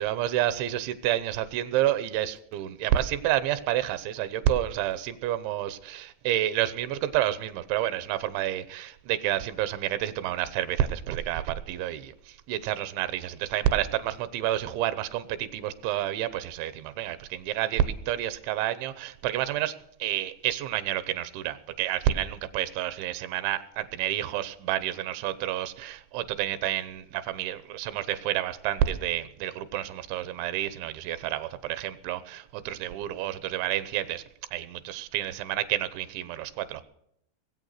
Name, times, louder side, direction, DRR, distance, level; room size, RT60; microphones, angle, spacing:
voice 1, 0.0-34.2 34.5-36.8, right 12 dB, 90° right, 14 dB, 3.3 m, -29 dB
20.5 x 8.5 x 6.6 m, 0.74 s
omnidirectional pair, 5.2 m